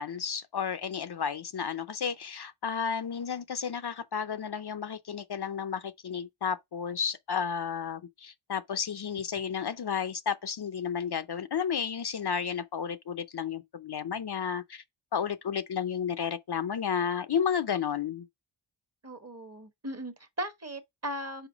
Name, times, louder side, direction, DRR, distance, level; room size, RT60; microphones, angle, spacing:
voice 1, 0.0-14.8 15.1-18.3, left 7 dB, 55° left, 0.6 m, -32 dB
voice 2, 19.0-21.5, right 1 dB, 30° right, 1.3 m, -38 dB
5.0 x 4.4 x 5.0 m
wide cardioid pair, 95°, 47 cm